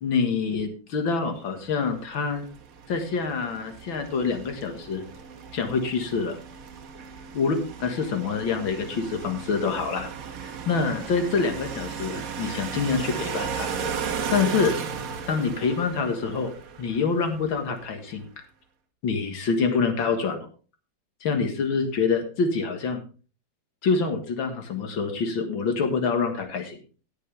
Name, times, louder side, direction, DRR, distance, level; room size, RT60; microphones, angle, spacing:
voice 1, 0.0-2.4 2.9-5.0 5.5-6.4 7.3-10.1 10.4-13.7 14.3-14.7 15.3-16.5 16.8-18.2 19.0-20.5 21.2-23.0 23.8-26.8, left 5 dB, 85° left, 6 dB, 2.4 m, -26 dB
sound 1, 1.8-17.9, right 6 dB, 50° right, 1.4 m, -36 dB
18.5 x 6.6 x 3.4 m, 0.36 s
omnidirectional pair, 2.1 m